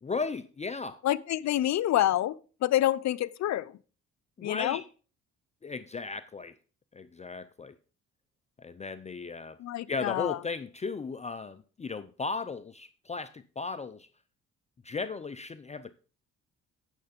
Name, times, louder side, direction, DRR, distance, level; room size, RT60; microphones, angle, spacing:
voice 1, 0.0-1.0 4.4-4.8 5.6-6.6 6.9-7.8 8.6-9.6 9.9-14.1 14.8-15.9, left 4 dB, 25° left, 0.5 m, -36 dB
voice 2, 1.0-3.7 4.4-4.8 9.6-10.4, left 13 dB, 65° left, 0.6 m, -27 dB
9.2 x 6.8 x 5.1 m
cardioid pair, 90°, 30 cm